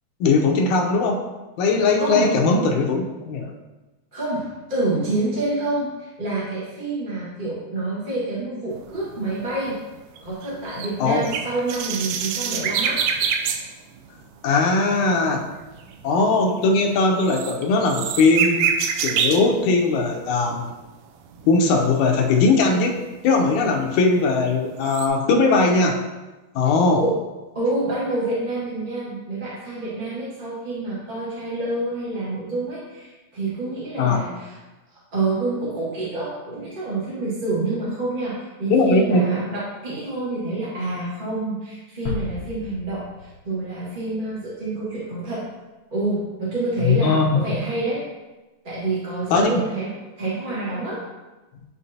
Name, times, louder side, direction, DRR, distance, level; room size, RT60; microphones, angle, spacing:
voice 1, 0.2-1.3 1.6-3.5 11.0-11.2 14.4-15.4 16.0-18.7 19.0-20.7 21.5-26.0 26.6-27.0 34.0-34.2 38.7-39.3 46.8-47.4 49.3-49.6, left 3 dB, 80° left, 2 dB, 2.1 m, -19 dB
voice 2, 2.0-2.3 4.1-9.8 10.2-13.0 27.0-27.2 27.5-34.6 35.1-45.4 45.9-48.0 48.6-51.0, right 2 dB, 25° right, -8 dB, 1.1 m, -27 dB
sound 1, 8.7-13.7 14.0-14.2 14.6-19.5 20.0-20.7 21.3-22.4 22.7-22.8 23.3-24.5 24.8-25.1, right 7 dB, 80° right, 1.6 m, -27 dB
sound 2, 42.1-45.0, left 4 dB, 60° left, 2.0 m, -35 dB
9.7 x 3.7 x 2.8 m, 1.1 s
omnidirectional pair, 3.4 m